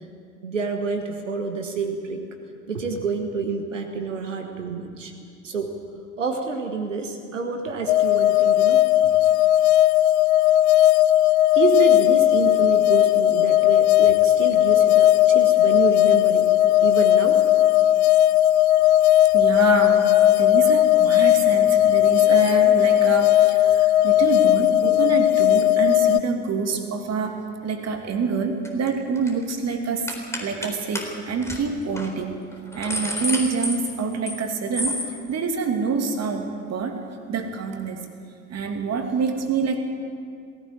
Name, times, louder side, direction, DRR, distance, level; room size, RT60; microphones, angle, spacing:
voice 1, 0.4-2.2 2.7-5.1 5.4-5.7 6.2-8.9 11.6-16.5 16.8-17.4, right 5 dB, 85° right, 5 dB, 1.4 m, -28 dB
sound 1, 7.9-26.2, left 13 dB, 70° left, 0.5 m, -17 dB
voice 2, 19.3-30.1 30.4-32.3 32.7-37.0 37.3-38.1 38.5-39.8, right 4 dB, 45° right, 4 dB, 2.7 m, -26 dB
sound 2, 28.6-28.9 29.2-29.4 30.1-30.7 31.0-31.1 31.4-31.6 32.0-32.1 32.5-34.4 34.7-35.1, left 1 dB, 5° left, 3.9 m, -29 dB
18.5 x 17.5 x 8.4 m, 2.2 s
figure-of-eight pair, 55°, 37 cm